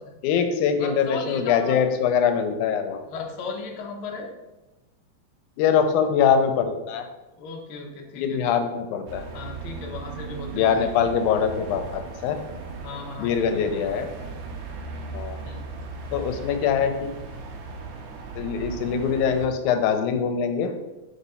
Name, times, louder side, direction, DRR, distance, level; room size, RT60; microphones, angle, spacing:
voice 1, 0.2-3.0 5.6-7.1 8.2-9.2 10.5-12.4 13.2-14.1 15.1-15.4 16.1-16.9 18.4-20.7, left 7 dB, 85° left, 7 dB, 2.1 m, -23 dB
voice 2, 0.8-1.8 3.1-4.3 7.4-8.4 9.3-10.9 12.8-13.8 14.2-14.4 15.4-15.6, left 3 dB, 60° left, 0 dB, 1.5 m, -36 dB
sound 1, 9.1-19.5, right 4 dB, 80° right, 2.0 m, -37 dB
5.0 x 4.0 x 5.5 m, 1.0 s
omnidirectional pair, 3.4 m